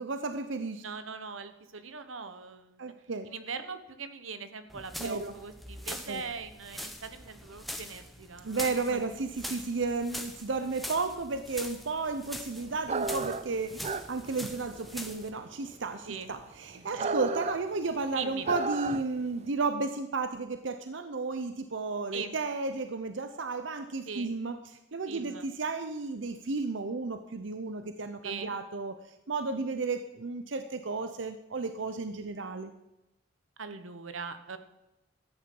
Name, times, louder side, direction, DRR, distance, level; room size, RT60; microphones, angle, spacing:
voice 1, 0.0-0.8 2.8-3.3 5.0-5.3 6.1-6.2 8.4-24.6 24.9-29.0 29.3-32.7, right 3 dB, 65° right, 9 dB, 0.7 m, -33 dB
voice 2, 0.8-2.8 3.3-9.1 16.1-16.3 16.7-17.2 18.1-18.5 22.1-22.3 24.1-24.3 25.1-25.5 28.2-28.5 33.6-34.6, right 5 dB, 80° right, 10 dB, 1.2 m, -41 dB
sound 1, 4.7-15.3, equal, ahead, 0.8 m, -43 dB
sound 2, 12.8-19.3, right 4 dB, 30° right, 0.4 m, -34 dB
13.5 x 9.7 x 5.4 m, 0.95 s
head